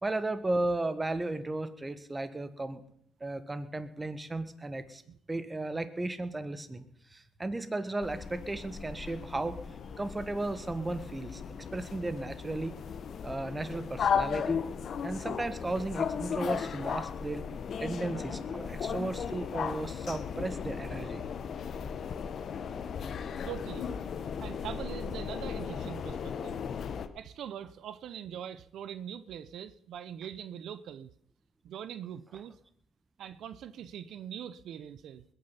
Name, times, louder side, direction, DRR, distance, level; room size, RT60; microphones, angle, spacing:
voice 1, 0.0-2.8 3.2-5.0 5.3-6.8 7.1-9.6 10.0-11.4 11.7-12.8 13.2-14.6 15.0-17.5 17.8-21.2, right 2 dB, 20° right, 11 dB, 1.4 m, -35 dB
sound 1, 8.0-27.1, left 7 dB, 60° left, 1.0 m, -36 dB
voice 2, 23.4-23.9 24.4-26.6 27.1-31.1 31.6-32.6 33.2-35.2, right 9 dB, 75° right, 14 dB, 0.6 m, -42 dB
21.0 x 9.2 x 5.7 m, 0.69 s
cardioid pair, 90°, 0 cm